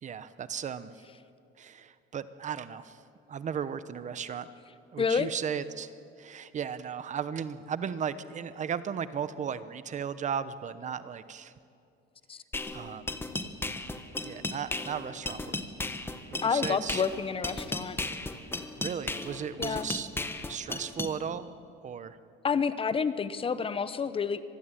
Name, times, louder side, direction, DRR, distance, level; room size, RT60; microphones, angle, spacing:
voice 1, 0.0-0.9 1.6-3.0 3.3-4.5 4.9-11.5 12.7-13.1 14.2-15.6 16.3-17.0 18.8-20.1 20.5-21.5 21.8-22.2, right 7 dB, 35° right, 14 dB, 1.0 m, -36 dB
voice 2, 5.0-5.3 12.3-12.4 16.4-18.0 19.6-19.9 22.4-24.4, left 6 dB, 25° left, 13 dB, 0.9 m, -29 dB
sound 1, 12.5-21.1, left 2 dB, 10° left, 1.4 m, -35 dB
25.0 x 20.0 x 9.1 m, 2.5 s
cardioid pair, 130°, 21 cm